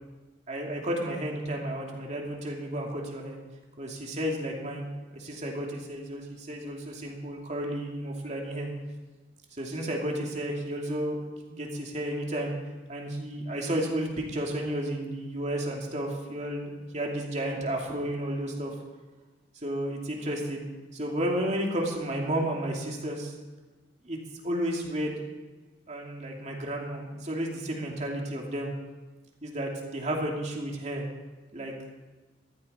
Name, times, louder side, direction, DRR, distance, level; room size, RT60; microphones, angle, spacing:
voice 1, 0.5-3.4 3.8-4.9 5.1-8.7 9.6-11.2 11.5-12.5 12.9-18.7 19.6-20.6 20.9-23.3 24.0-24.2 24.4-25.1 25.9-28.7 29.4-31.0 31.5-31.7, right 1 dB, 40° right, 0 dB, 2.6 m, -32 dB
15.0 x 13.5 x 4.4 m, 1.2 s
head